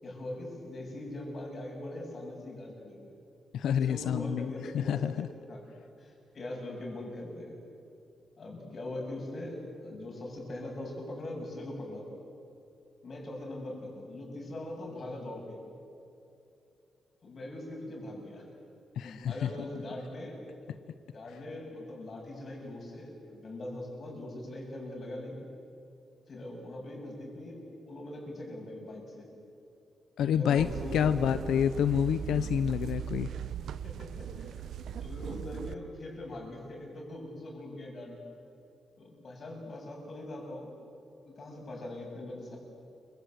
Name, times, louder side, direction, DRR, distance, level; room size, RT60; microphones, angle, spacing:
voice 1, 0.0-3.1 3.7-5.7 6.0-7.6 8.4-12.1 13.0-15.6 17.2-18.5 19.0-20.4 21.1-25.4 26.3-29.3 30.3-31.3 32.8-32.9 33.8-34.7 35.0-38.2 39.0-40.7 41.2-42.6, left 1 dB, 40° left, 0 dB, 7.9 m, -41 dB
voice 2, 3.5-5.3 19.0-19.6 21.3-21.4 30.2-33.3, left 8 dB, 90° left, 12 dB, 0.7 m, -28 dB
sound 1, 30.6-35.7, right 9 dB, 75° right, 1.0 m, -38 dB
28.5 x 25.5 x 8.1 m, 2.8 s
wide cardioid pair, 150°, 0 cm